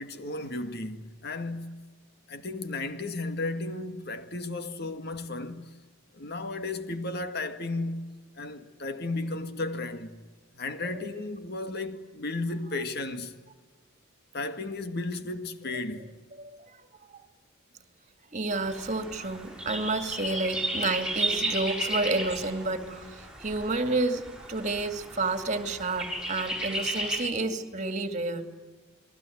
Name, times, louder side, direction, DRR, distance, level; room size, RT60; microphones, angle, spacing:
voice 1, 0.0-1.8 2.3-5.7 6.1-8.1 8.3-10.2 10.5-13.4 14.3-16.1, left 2 dB, 50° left, 2.0 m, -34 dB
voice 2, 16.4-16.9 18.3-28.4, right 3 dB, 35° right, 2.4 m, -30 dB
sound 1, 18.5-27.2, right 1 dB, 5° right, 6.5 m, -34 dB
29.0 x 20.5 x 9.4 m
head